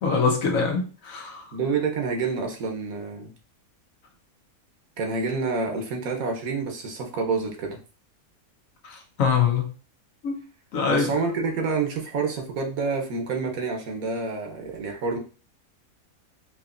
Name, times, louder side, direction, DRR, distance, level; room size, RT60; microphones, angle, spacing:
voice 1, 0.0-1.4 8.9-9.6 10.2-10.4 10.7-11.1, left 5 dB, 70° left, 2 dB, 1.2 m, -24 dB
voice 2, 1.5-3.3 5.0-7.8 10.9-15.2, right 4 dB, 75° right, 3 dB, 1.3 m, -28 dB
4.9 x 2.9 x 2.5 m, 0.36 s
omnidirectional pair, 1.5 m